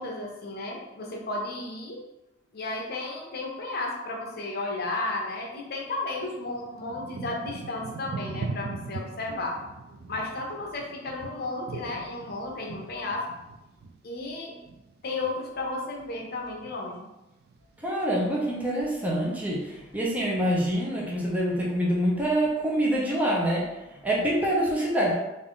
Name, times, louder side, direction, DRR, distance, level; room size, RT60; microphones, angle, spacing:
voice 1, 0.0-2.0 2.5-9.6 10.1-13.2 14.0-14.7 15.0-17.1, left 2 dB, 55° left, 0 dB, 0.7 m, -33 dB
Thunder / Rain, 5.4-5.5 6.2-15.7 16.0-16.8 17.4-17.8 18.0-18.8 19.4-19.5, right 4 dB, 55° right, 0.4 m, -40 dB
voice 2, 17.8-25.1, right 1 dB, 10° right, -5 dB, 0.7 m, -26 dB
3.6 x 2.6 x 3.6 m, 0.98 s
head